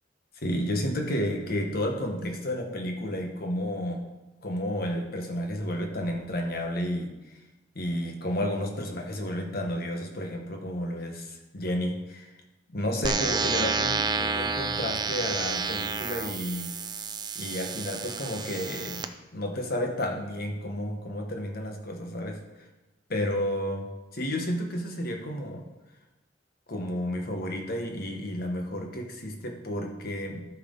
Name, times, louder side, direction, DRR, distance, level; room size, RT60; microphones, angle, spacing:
voice 1, 0.4-4.1 4.4-7.1 7.7-12.3 12.7-16.8 17.3-19.1 19.3-22.4 23.1-25.6 26.7-30.5, left 1 dB, 55° left, 2 dB, 1.4 m, -31 dB
sound 1, 13.0-19.0, right 4 dB, 25° right, 0.5 m, -30 dB
13.0 x 5.9 x 4.0 m, 1.1 s
head